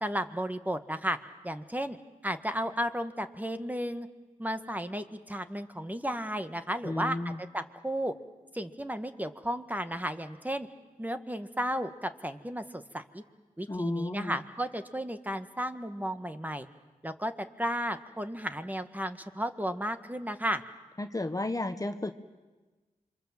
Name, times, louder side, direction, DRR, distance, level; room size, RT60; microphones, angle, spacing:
voice 1, 0.0-1.2 1.4-2.0 2.2-4.1 4.4-8.1 8.5-10.7 11.0-13.2 13.6-16.7 17.0-17.3 17.6-20.6, equal, 10° right, 9 dB, 1.7 m, -33 dB
voice 2, 6.8-7.4 13.7-14.4 21.0-22.1, left 2 dB, 25° left, 8 dB, 1.3 m, -32 dB
27.5 x 24.0 x 7.5 m, 1.3 s
cardioid pair, 45°, 15 cm